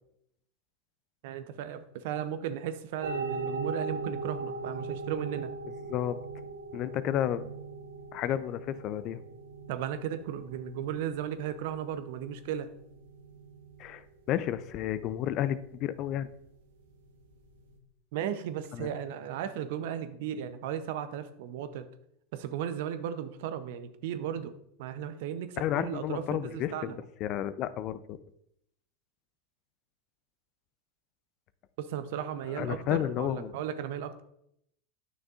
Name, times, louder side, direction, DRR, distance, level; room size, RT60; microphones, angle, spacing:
voice 1, 1.2-5.5 9.7-12.7 18.1-21.8 22.3-24.5 24.8-27.0 31.8-34.2, right 9 dB, 65° right, 11 dB, 0.6 m, -35 dB
sound 1, 3.0-17.8, right 3 dB, 85° right, 1.1 m, -41 dB
voice 2, 6.7-7.5 8.1-9.2 13.8-14.0 14.3-16.3 18.7-18.9 25.6-28.2 32.5-33.5, left 11 dB, 50° left, 14 dB, 0.4 m, -31 dB
9.4 x 6.3 x 2.4 m, 0.75 s
hypercardioid pair, 95°, 0 cm